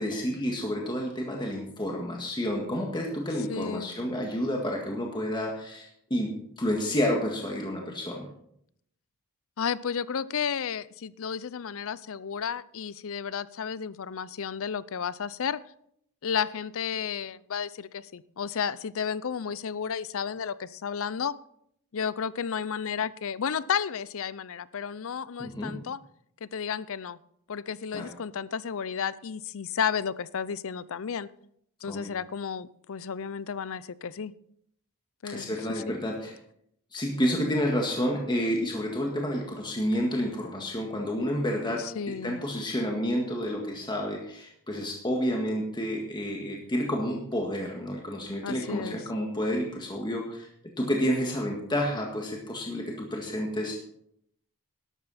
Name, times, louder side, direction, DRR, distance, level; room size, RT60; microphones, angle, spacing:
voice 1, 0.0-8.3 25.4-25.8 27.9-28.1 31.8-32.1 35.2-36.3 36.9-50.5 50.8-53.8, equal, 20° left, 0 dB, 1.8 m, -30 dB
voice 2, 3.5-3.9 9.6-15.6 16.2-21.3 21.9-26.0 26.4-27.2 27.5-31.3 31.8-34.3 35.2-35.8 41.8-42.4 48.4-49.0, left 7 dB, 65° left, 18 dB, 0.5 m, -32 dB
12.5 x 12.0 x 4.2 m, 0.71 s
head